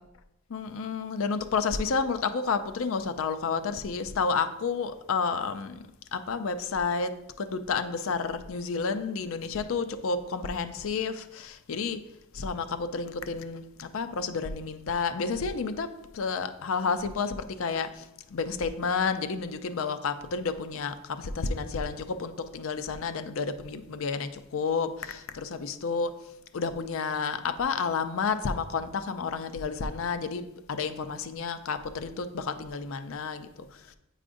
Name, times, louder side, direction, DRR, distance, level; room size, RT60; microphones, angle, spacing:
voice 1, 0.5-5.8 6.1-12.0 12.3-15.9 16.1-26.1 26.5-33.9, left 5 dB, 65° left, 10 dB, 0.5 m, -31 dB
8.3 x 4.9 x 2.6 m, 0.90 s
head